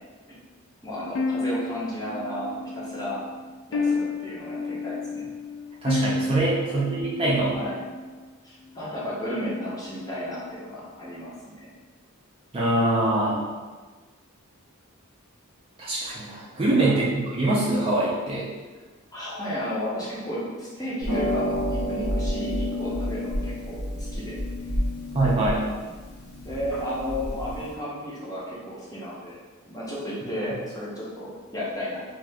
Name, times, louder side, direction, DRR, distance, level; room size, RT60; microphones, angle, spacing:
voice 1, 0.8-3.2 3.7-5.3 6.6-6.7 7.3-7.8 8.4-11.7 16.8-17.0 19.1-24.4 26.4-29.4 29.7-32.0, equal, 15° left, -7 dB, 0.6 m, -33 dB
sound 1, 1.1-8.3, left 3 dB, 60° left, 0.3 m, -31 dB
voice 2, 5.8-7.5 12.5-13.4 15.8-18.5 25.1-25.6, right 2 dB, 25° right, -6 dB, 0.4 m, -23 dB
Harp, 21.0-27.7, left 1 dB, 85° left, 0.8 m, -30 dB
2.7 x 2.4 x 3.3 m, 1.4 s
head